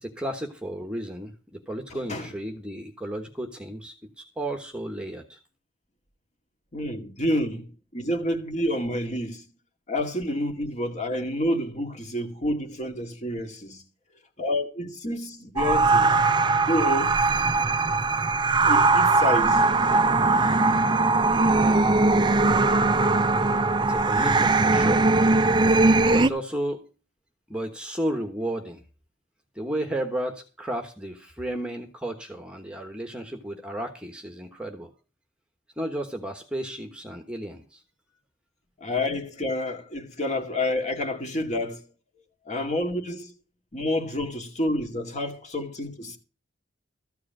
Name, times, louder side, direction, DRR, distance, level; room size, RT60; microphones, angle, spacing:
voice 1, 0.0-5.4 23.8-25.1 26.1-26.8 27.5-28.8 29.5-34.9 35.8-37.8, right 1 dB, 5° right, 1.2 m, -33 dB
voice 2, 6.7-9.4 9.9-13.8 14.4-16.1 16.7-17.1 18.6-19.6 38.8-41.8 42.5-43.3 43.7-46.2, left 1 dB, 40° left, 2.1 m, -29 dB
sound 1, 15.6-26.3, right 3 dB, 25° right, 0.5 m, -20 dB
14.0 x 4.8 x 8.9 m
head